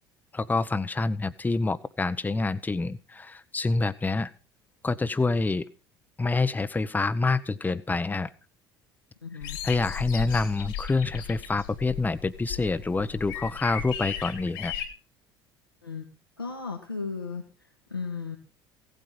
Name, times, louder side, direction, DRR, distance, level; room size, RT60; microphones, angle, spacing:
voice 1, 0.3-4.3 4.8-5.6 6.2-8.3 9.6-14.7, left 3 dB, 15° left, 14 dB, 1.0 m, -27 dB
voice 2, 9.2-9.6 15.8-16.1 16.4-17.4 17.9-18.4, left 4 dB, 85° left, 1 dB, 2.1 m, -35 dB
sound 1, 9.4-14.9, left 8 dB, 65° left, 2.8 m, -36 dB
17.0 x 9.0 x 5.8 m, 0.34 s
figure-of-eight pair, 60°, 12 cm